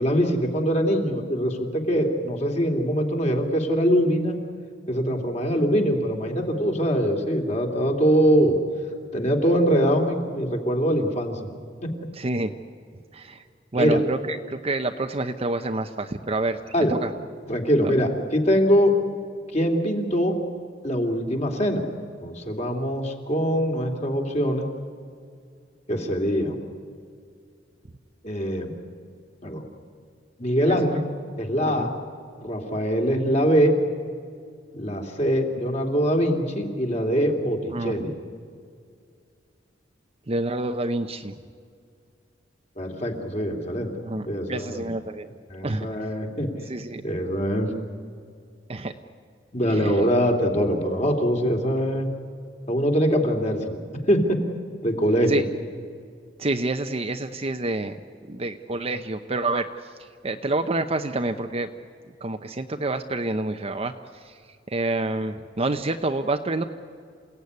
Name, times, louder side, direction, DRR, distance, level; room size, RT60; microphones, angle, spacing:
voice 1, 0.0-4.4 4.9-8.6 9.1-11.4 11.8-11.9 13.7-14.0 16.7-16.9 17.5-18.9 19.5-20.3 20.8-21.8 22.2-24.7 25.9-26.6 28.2-28.7 29.4-29.6 30.4-31.0 31.4-31.9 32.4-33.7 34.7-38.1 42.8-43.9 44.3-44.8 45.5-46.5 47.0-47.7 49.5-52.1 52.7-53.8 54.1-54.4 54.8-55.4, equal, 40° left, 2 dB, 2.9 m, -23 dB
voice 2, 12.1-12.5 13.1-13.4 13.7-17.4 17.8-17.9 30.7-30.8 31.6-31.9 37.7-38.1 40.3-41.3 44.0-45.3 45.6-45.9 46.7-47.0 48.7-48.9 49.7-50.0 55.3-55.4 55.7-56.0 56.4-58.0 58.3-61.7 62.2-64.4 64.7-66.6, right 2 dB, 35° right, 6 dB, 0.8 m, -28 dB
28.5 x 16.5 x 9.6 m, 2.2 s
head